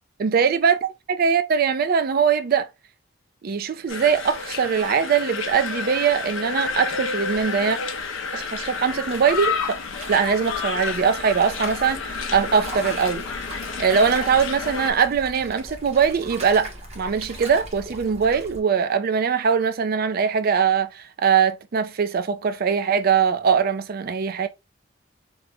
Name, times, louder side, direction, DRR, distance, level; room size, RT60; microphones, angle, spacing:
voice 1, 0.2-2.7 3.4-7.8 8.3-9.8 10.1-13.3 13.8-24.5, right 6 dB, 50° right, 0.4 m, -21 dB
sound 1, 3.9-14.9, left 5 dB, 75° left, 0.5 m, -30 dB
sound 2, 6.5-18.6, right 1 dB, 35° right, 0.8 m, -40 dB
3.1 x 2.1 x 3.3 m
head